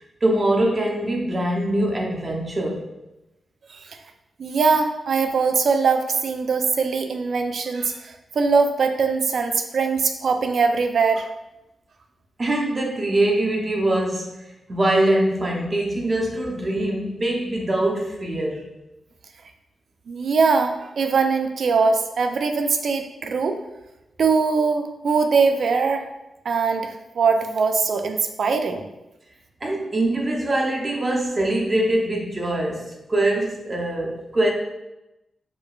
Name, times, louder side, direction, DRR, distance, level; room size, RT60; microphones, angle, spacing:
voice 1, 0.2-2.8 12.4-14.4 14.7-18.7 29.6-34.5, right 1 dB, 40° right, -1 dB, 0.8 m, -23 dB
voice 2, 4.4-11.3 20.1-23.6 24.2-26.1 26.5-28.9, right 4 dB, 70° right, 6 dB, 0.3 m, -21 dB
4.9 x 2.2 x 2.3 m, 0.95 s
supercardioid pair, 50°, 0 cm